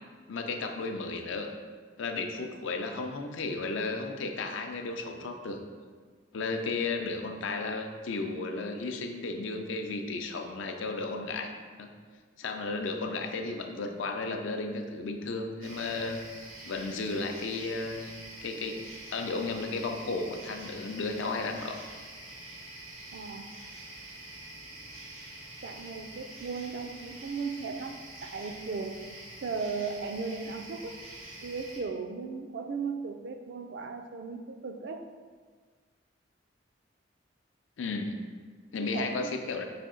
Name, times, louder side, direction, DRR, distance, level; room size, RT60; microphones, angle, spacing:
voice 1, 0.3-1.5 2.0-5.6 6.3-11.5 11.8-11.9 12.4-16.2 16.6-18.8 19.1-21.8 37.8-38.2 38.7-39.6, left 3 dB, 75° left, 5 dB, 0.5 m, -34 dB
sound 1, 15.6-31.8, right 1 dB, 85° right, 1.0 m, -46 dB
voice 2, 23.1-23.5 25.6-29.0 29.4-31.0 31.4-35.0 38.8-39.3, right 4 dB, 60° right, 6 dB, 0.3 m, -36 dB
5.1 x 2.7 x 3.7 m, 1.5 s
head